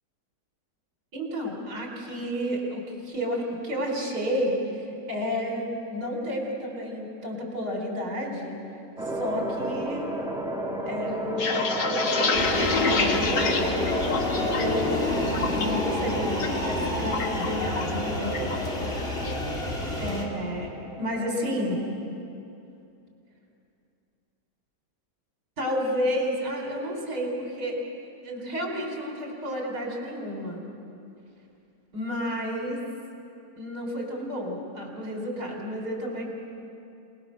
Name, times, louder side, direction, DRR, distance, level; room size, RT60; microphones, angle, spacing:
voice 1, 1.1-8.6 9.1-10.1 10.8-14.1 14.3-15.1 15.5-18.4 20.0-20.7 21.0-21.8 25.6-27.8 28.2-30.6 31.9-32.8 33.6-36.3, equal, 65° right, 0 dB, 5.0 m, -31 dB
sound 1, 9.0-21.8, right 1 dB, ahead, 2.5 m, -34 dB
sound 2, 11.1-14.8 15.1-15.7 16.1-16.5 16.7-18.0 18.3-18.6 18.9-19.4, left 4 dB, 80° left, 2.3 m, -27 dB
sound 3, 12.3-20.2, left 2 dB, 35° left, 2.9 m, -29 dB
29.0 x 19.5 x 6.8 m, 2.7 s
omnidirectional pair, 1.9 m